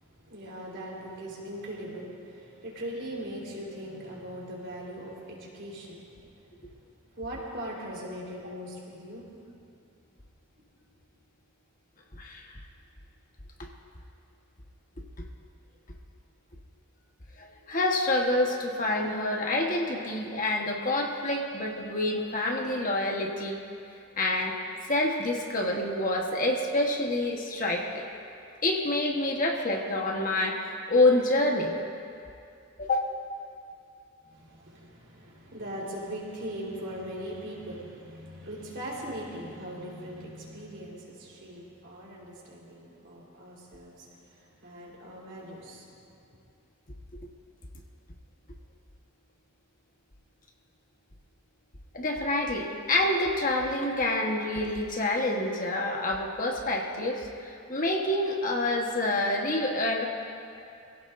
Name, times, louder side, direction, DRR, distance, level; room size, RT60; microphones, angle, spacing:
voice 1, 0.1-6.2 6.6-6.7 7.1-9.3 34.2-44.1 44.4-45.9, equal, 55° right, -4 dB, 4.0 m, -40 dB
voice 2, 12.1-12.5 13.6-13.7 15.2-15.3 17.4-23.6 24.2-24.6 24.9-28.0 28.6-31.7 32.8-33.1 47.1-47.2 51.9-60.0, left 2 dB, 40° left, 1 dB, 1.3 m, -27 dB
25.5 x 16.5 x 2.6 m, 2.5 s
head